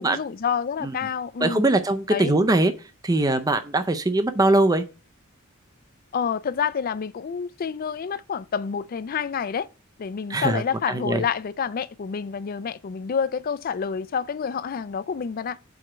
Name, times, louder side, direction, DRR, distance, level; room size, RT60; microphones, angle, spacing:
voice 1, 0.0-1.7 2.1-2.3 6.1-9.7 10.0-15.6, left 6 dB, 45° left, 0.4 m, -28 dB
voice 2, 1.4-2.7 3.0-4.8 10.3-10.6 10.9-11.2, right 2 dB, 20° right, 0.5 m, -21 dB
4.8 x 4.4 x 6.0 m
head